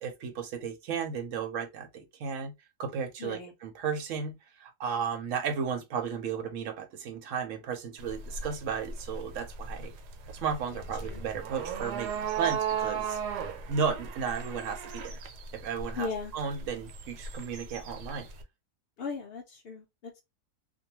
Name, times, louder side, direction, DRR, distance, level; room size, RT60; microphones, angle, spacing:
voice 1, 0.0-2.5 2.8-9.9 10.3-13.2 13.7-15.2 15.5-16.1 16.3-18.3, right 6 dB, 65° right, 0.8 m, -34 dB
voice 2, 3.2-3.5 10.7-10.8 11.1-11.2 16.0-16.3 19.0-20.2, left 4 dB, 80° left, 0.5 m, -37 dB
sound 1, 8.0-18.4, right 6 dB, 90° right, 1.2 m, -36 dB
2.5 x 2.2 x 2.8 m
omnidirectional pair, 1.7 m